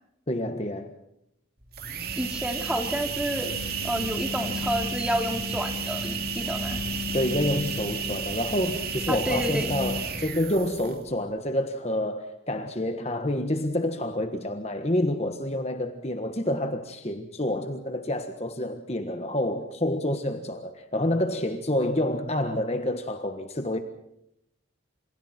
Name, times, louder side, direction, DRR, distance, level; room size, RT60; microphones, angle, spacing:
voice 1, 0.3-0.9 7.1-23.8, left 1 dB, 30° left, 1.5 m, -28 dB
sound 1, 1.6-11.1, right 3 dB, 50° right, 2.9 m, -31 dB
voice 2, 2.2-3.5 3.8-6.8 9.1-9.7, equal, 5° right, 2.8 m, -30 dB
29.0 x 27.5 x 4.5 m
head